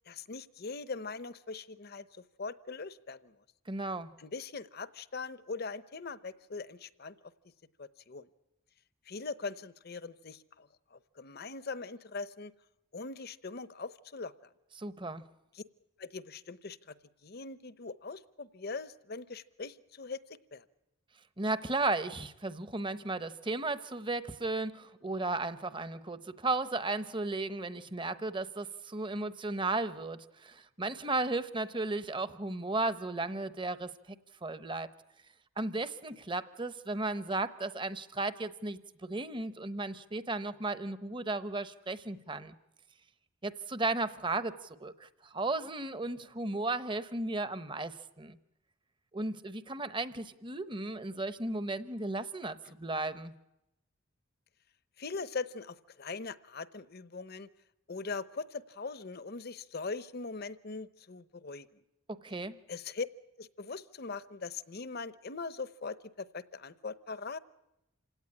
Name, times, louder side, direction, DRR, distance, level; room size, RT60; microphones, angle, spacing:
voice 1, 0.1-3.4 4.2-7.1 7.8-8.3 9.1-12.5 12.9-14.3 15.5-15.6 16.0-17.0 17.2-20.2 20.5-20.6 52.6-52.7 55.0-57.5 57.9-61.8 62.7-63.1 63.4-67.4, left 4 dB, 45° left, 15 dB, 0.8 m, -41 dB
voice 2, 3.7-4.1 14.8-15.3 21.4-34.2 34.4-34.9 35.6-42.5 43.4-48.4 49.1-53.3 62.2-62.6, right 2 dB, 20° right, 13 dB, 0.9 m, -35 dB
27.0 x 17.5 x 9.8 m, 0.89 s
head